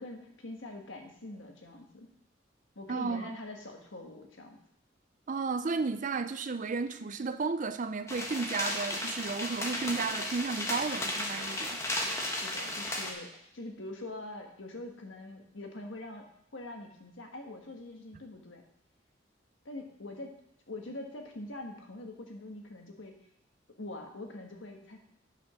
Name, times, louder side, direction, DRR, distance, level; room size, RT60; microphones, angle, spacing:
voice 1, 0.0-2.1 2.7-4.6 12.3-16.3 16.5-18.6 19.6-20.4 20.7-23.1 23.8-25.0, left 2 dB, 80° left, 3 dB, 1.5 m, -44 dB
voice 2, 2.9-3.3 5.3-11.8, right 4 dB, 40° right, 11 dB, 0.5 m, -33 dB
sound 1, 8.1-13.1, left 1 dB, 15° left, 1.2 m, -34 dB
9.3 x 5.3 x 6.1 m, 0.75 s
head